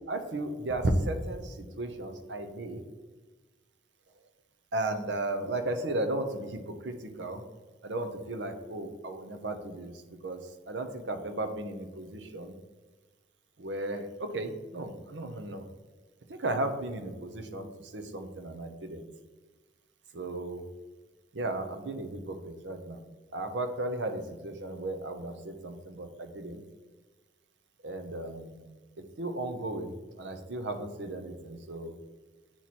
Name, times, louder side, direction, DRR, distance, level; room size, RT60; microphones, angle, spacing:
voice 1, 0.1-2.8 4.7-7.4 7.8-10.4 10.7-12.5 13.6-15.7 16.3-19.1 20.1-20.6 21.3-23.0 23.3-26.6 27.8-28.7 29.2-31.9, right 2 dB, 75° right, 7 dB, 0.7 m, -35 dB
8.9 x 3.0 x 4.1 m, 1.3 s
head